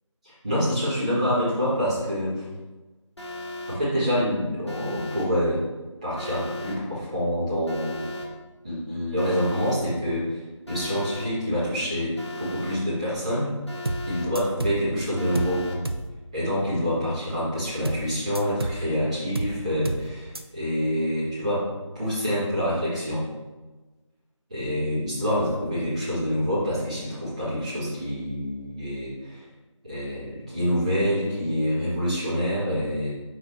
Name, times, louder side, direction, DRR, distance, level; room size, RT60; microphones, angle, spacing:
voice 1, 0.2-2.4 3.7-5.6 6.0-8.0 8.6-10.4 10.7-13.5 14.1-15.6 16.3-21.7 21.9-23.2 24.5-29.4 29.8-33.1, equal, 15° right, -12 dB, 1.5 m, -26 dB
Alarm, 3.2-3.8 4.7-5.3 6.2-6.8 7.7-8.3 9.2-9.8 10.7-11.3 12.2-12.8 13.7-14.3 15.2-15.8, left 1 dB, 60° left, 1.5 m, -36 dB
sound 1, 13.9-14.1 14.4-14.8 15.4-15.6 15.9-16.1 17.9-18.1 18.4-18.8 19.4-19.6 19.9-20.1 20.4-20.5, right 2 dB, 50° right, 0.5 m, -30 dB
6.5 x 4.6 x 3.3 m, 1.2 s
figure-of-eight pair, 170°, 16 cm